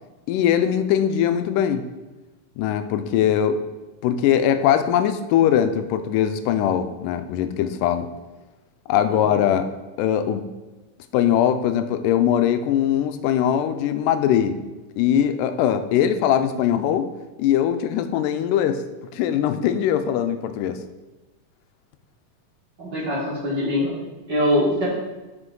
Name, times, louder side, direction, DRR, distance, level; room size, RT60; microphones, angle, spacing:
voice 1, 0.3-1.9 2.6-3.6 4.0-8.1 8.9-9.7 10.0-10.4 11.1-14.6 15.0-17.1 17.4-18.8 19.1-20.8, left 9 dB, 90° left, 9 dB, 2.1 m, -21 dB
voice 2, 22.8-23.9 24.3-24.9, left 1 dB, 40° right, -7 dB, 2.0 m, -23 dB
8.0 x 5.2 x 3.8 m, 1.1 s
omnidirectional pair, 3.7 m